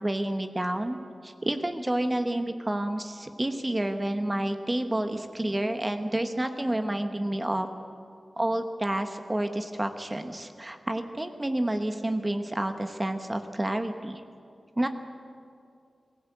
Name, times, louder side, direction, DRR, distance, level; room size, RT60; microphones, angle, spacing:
voice 1, 0.0-7.7 8.4-14.2 14.8-14.9, right 1 dB, 20° right, 7 dB, 1.1 m, -29 dB
22.5 x 16.0 x 8.0 m, 2.4 s
wide cardioid pair, 120°, 0 cm